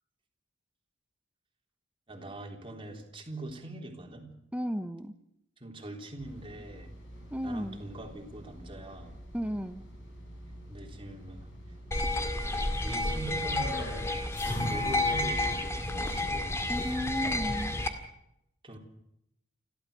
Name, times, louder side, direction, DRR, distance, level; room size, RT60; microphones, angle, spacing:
voice 1, 2.1-4.3 5.6-6.9 7.4-9.1 10.7-11.8 12.8-14.1 14.4-16.6 18.6-18.8, right 2 dB, 25° right, 2 dB, 3.6 m, -43 dB
voice 2, 4.5-5.1 7.3-7.8 9.3-9.8 16.7-17.8, equal, 5° right, 10 dB, 0.9 m, -34 dB
sound 1, 6.2-16.9, equal, 65° left, 7.3 m, -46 dB
sound 2, 11.9-17.9, left 2 dB, 15° left, 2.0 m, -30 dB
30.0 x 13.0 x 6.7 m, 0.79 s
head